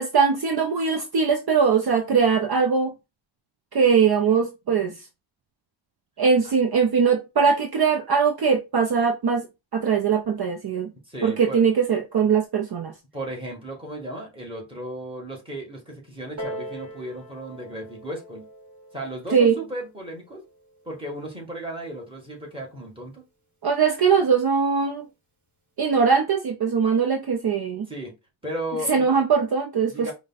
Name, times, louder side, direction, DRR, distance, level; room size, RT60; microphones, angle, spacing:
voice 1, 0.0-2.9 3.7-4.9 6.2-9.5 9.7-10.9 11.2-12.9 19.3-19.6 23.6-25.1 25.8-27.9 28.9-30.1, right 6 dB, 50° right, 0.7 m, -21 dB
voice 2, 11.1-11.6 13.1-18.4 18.9-20.4 20.9-23.2 27.9-28.1 28.4-29.2 29.9-30.1, right 1 dB, 10° right, 1.9 m, -35 dB
Piano, 16.4-21.6 22.4-22.5, equal, 35° right, 1.8 m, -41 dB
5.0 x 2.4 x 4.0 m
wide cardioid pair, 160°, 47 cm